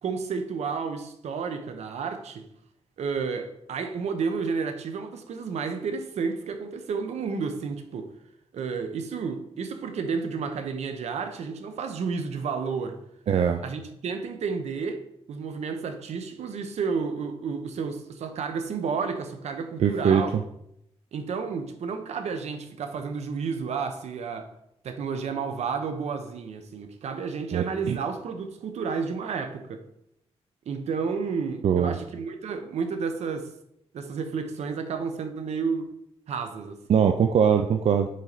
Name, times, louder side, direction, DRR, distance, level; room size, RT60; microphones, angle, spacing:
voice 1, 0.0-2.5 3.0-8.1 8.5-13.0 13.6-15.0 15.3-20.4 21.1-24.5 24.8-29.8 30.7-33.5 33.9-35.9 36.3-36.8, right 5 dB, 85° right, 0.8 m, -31 dB
voice 2, 13.3-13.6 19.8-20.4 27.5-28.0 31.6-32.0 36.9-38.1, right 7 dB, 65° right, 0.4 m, -22 dB
6.2 x 4.3 x 4.0 m
wide cardioid pair, 110°, 11 cm